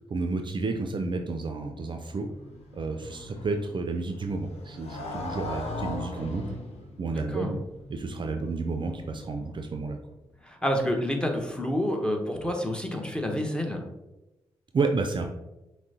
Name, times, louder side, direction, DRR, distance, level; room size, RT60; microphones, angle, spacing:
voice 1, 0.1-2.3 2.7-6.4 7.0-7.6 7.9-10.0 14.7-15.3, right 3 dB, 45° right, 4 dB, 0.4 m, -30 dB
Motorcycle, 1.7-9.8, left 2 dB, 60° left, 0.8 m, -40 dB
voice 2, 10.4-13.8, equal, 10° left, 2 dB, 0.9 m, -28 dB
5.9 x 2.1 x 2.8 m, 0.99 s
hypercardioid pair, 40°, 12 cm